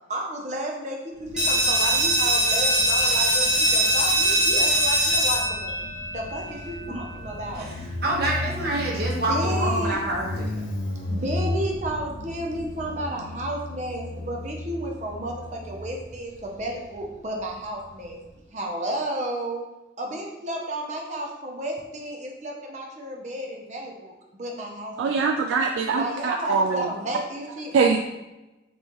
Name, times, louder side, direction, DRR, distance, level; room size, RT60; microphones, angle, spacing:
voice 1, 0.1-7.7 9.3-10.0 11.0-18.2 18.5-19.6 20.0-25.3 25.9-28.0, right 1 dB, 40° right, 0 dB, 0.6 m, -32 dB
Motorcycle, 1.2-18.4, left 1 dB, 90° left, 0.6 m, -35 dB
sound 1, 1.4-6.8, right 1 dB, 5° right, 1.1 m, -22 dB
voice 2, 7.5-10.6, right 1 dB, 55° right, -3 dB, 1.2 m, -27 dB
voice 3, 25.0-26.8 27.7-28.0, right 5 dB, 85° right, 3 dB, 0.3 m, -22 dB
5.2 x 3.0 x 3.0 m, 1.0 s
head